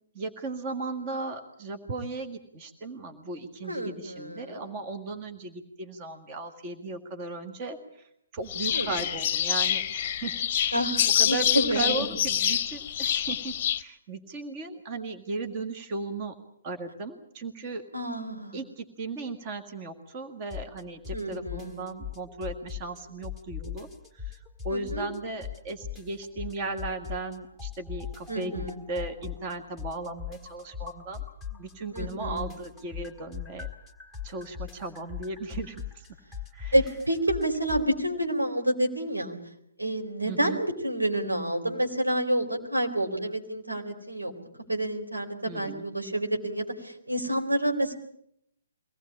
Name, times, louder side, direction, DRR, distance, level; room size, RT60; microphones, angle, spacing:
voice 1, 0.1-10.9 11.2-16.3 16.6-17.8 18.5-23.9 24.1-31.2 31.6-33.7 34.2-36.0 36.5-36.7 40.3-40.6 45.5-45.8, right 3 dB, 30° right, 8 dB, 1.8 m, -36 dB
voice 2, 3.6-4.6 8.7-8.9 10.7-12.1 17.9-18.6 21.1-21.8 24.7-25.1 28.3-28.8 31.5-31.6 31.9-32.4 36.7-39.4 39.8-44.3 44.7-48.0, right 1 dB, 80° right, 2 dB, 4.0 m, -29 dB
sound 1, 8.5-13.8, left 9 dB, 35° left, 0.9 m, -27 dB
sound 2, 20.5-20.8 21.1-23.0 23.2-25.2 25.4-27.3 27.6-31.7 32.0-37.9, left 9 dB, 10° right, 1.8 m, -38 dB
23.5 x 18.5 x 8.6 m, 0.74 s
figure-of-eight pair, 130°, 0 cm